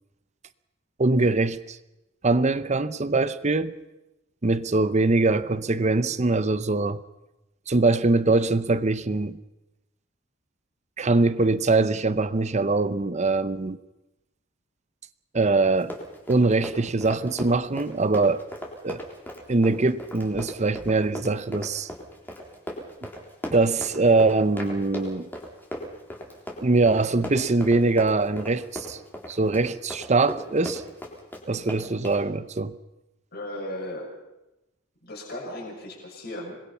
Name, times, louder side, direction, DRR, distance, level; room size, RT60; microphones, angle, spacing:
voice 1, 1.0-1.8 2.2-3.7 4.4-7.0 7.7-9.4 11.0-13.8 15.3-15.9 16.3-18.4 18.8-19.0 19.5-21.9 23.5-25.3 26.6-29.0 29.3-30.8 31.5-32.7, right 3 dB, 35° right, 0.8 m, -22 dB
Run, 15.7-32.2, equal, 10° left, 3.7 m, -37 dB
voice 2, 33.3-34.1 35.0-36.6, left 1 dB, 50° left, 6.2 m, -36 dB
26.0 x 21.0 x 5.7 m
head